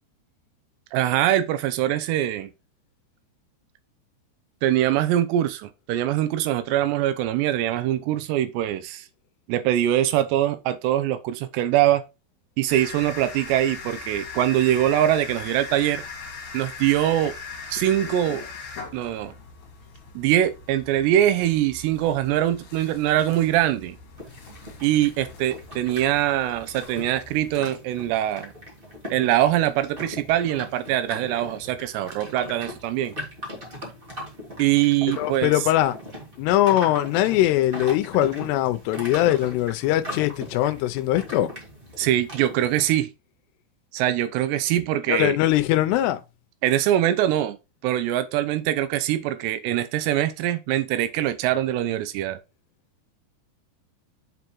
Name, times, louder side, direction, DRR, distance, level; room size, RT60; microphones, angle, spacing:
voice 1, 0.9-2.5 4.6-9.0 9.5-12.0 12.6-16.0 16.5-17.3 17.7-18.4 18.9-19.3 20.2-24.0 24.8-28.5 29.1-33.1 34.6-35.5 42.0-43.1 43.9-45.4 46.6-47.6 47.8-52.4, right 12 dB, 80° right, 2.7 m, -23 dB
sound 1, 12.7-27.5, left 4 dB, 55° left, 2.6 m, -40 dB
sound 2, 24.2-43.0, left 1 dB, 35° right, 0.8 m, -40 dB
voice 2, 35.2-36.0 36.4-41.5 45.1-46.2, left 14 dB, 80° left, 2.6 m, -21 dB
7.7 x 4.7 x 3.0 m
omnidirectional pair, 5.1 m